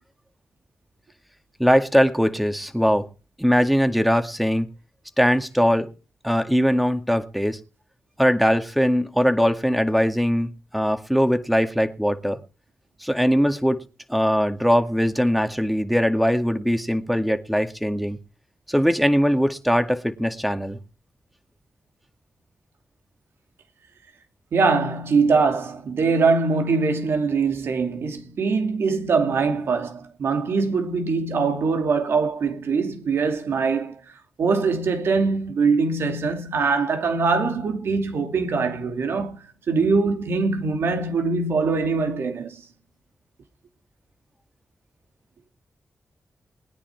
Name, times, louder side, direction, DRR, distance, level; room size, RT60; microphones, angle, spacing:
voice 1, 1.6-3.1 3.4-4.7 5.2-5.9 6.2-7.6 8.2-12.4 13.0-13.8 14.1-18.2 18.7-20.8, equal, ahead, 2.1 m, -21 dB
voice 2, 24.5-34.0 34.4-42.6, right 4 dB, 75° right, 2.7 m, -22 dB
20.5 x 9.9 x 4.7 m
cardioid pair, 50°, 4 cm